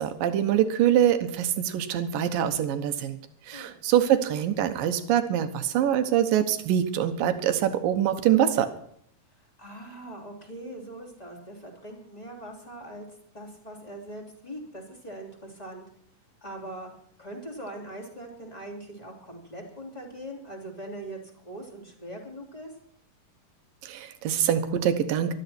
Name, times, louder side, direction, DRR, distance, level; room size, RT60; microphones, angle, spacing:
voice 1, 0.0-3.2 3.5-8.7 23.8-25.3, right 10 dB, 85° right, 8 dB, 2.9 m, -24 dB
voice 2, 9.6-13.1 13.3-15.8 16.4-16.9 17.2-22.7, right 1 dB, 10° left, 0 dB, 2.9 m, -41 dB
20.0 x 13.0 x 4.4 m, 0.65 s
omnidirectional pair, 3.9 m